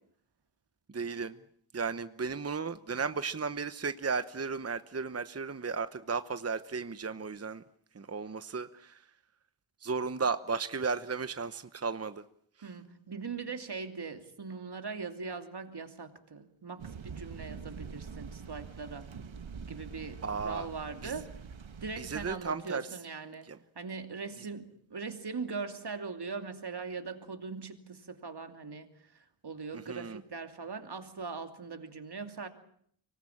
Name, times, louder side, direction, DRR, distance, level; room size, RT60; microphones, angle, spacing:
voice 1, 0.9-1.4 1.7-7.6 7.9-9.0 9.8-12.2 12.6-12.7 20.2-20.7 21.0-21.1 22.0-22.9 23.4-23.6 29.7-30.2, right 5 dB, 30° right, 12 dB, 1.0 m, -34 dB
voice 2, 12.6-19.1 19.7-21.4 21.8-23.5 23.8-28.9 29.4-32.5, right 4 dB, 55° right, 6 dB, 2.8 m, -40 dB
sound 1, 16.8-22.4, right 6 dB, 80° right, 1.7 m, -45 dB
24.5 x 19.5 x 8.7 m, 0.66 s
wide cardioid pair, 80°, 46 cm